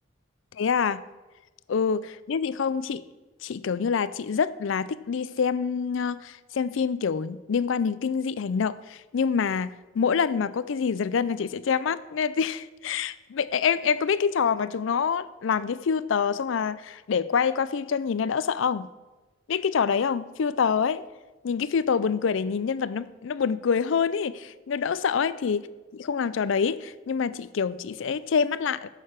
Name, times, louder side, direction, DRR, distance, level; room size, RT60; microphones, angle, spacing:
voice 1, 0.5-1.1 1.7-3.0 3.4-18.9 19.5-21.0 21.4-25.7 26.0-28.9, left 6 dB, 75° left, 17 dB, 0.4 m, -26 dB
9.6 x 6.6 x 5.8 m, 1.2 s
head